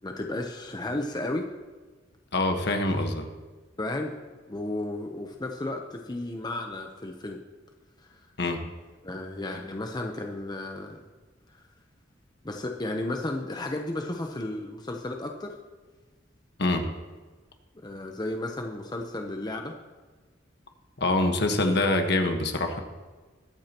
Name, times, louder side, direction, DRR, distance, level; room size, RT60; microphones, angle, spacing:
voice 1, 0.0-1.5 3.8-4.2 4.5-7.4 8.0-8.2 9.0-11.0 11.5-11.6 12.4-15.5 17.8-19.8, left 1 dB, 20° left, 3 dB, 0.8 m, -33 dB
voice 2, 2.3-3.3 8.4-8.6 16.6-16.9 21.0-22.8, left 2 dB, 65° left, 4 dB, 1.4 m, -25 dB
22.0 x 8.4 x 3.0 m, 1.3 s
head